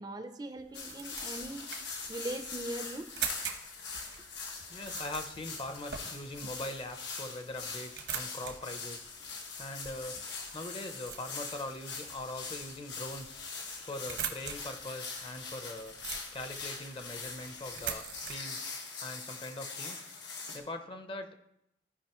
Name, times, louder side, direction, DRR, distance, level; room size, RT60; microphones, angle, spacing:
voice 1, 0.0-3.1, right 1 dB, 25° right, 7 dB, 0.5 m, -40 dB
sound 1, 0.6-18.4, right 8 dB, 75° right, 1.1 m, -45 dB
sound 2, 0.7-20.6, left 4 dB, 85° left, 1.6 m, -42 dB
voice 2, 4.7-10.2 10.5-13.4 13.8-16.0 16.3-18.7 19.0-20.1 20.5-21.3, left 1 dB, 30° left, 7 dB, 0.7 m, -42 dB
15.0 x 5.1 x 3.0 m, 0.80 s
head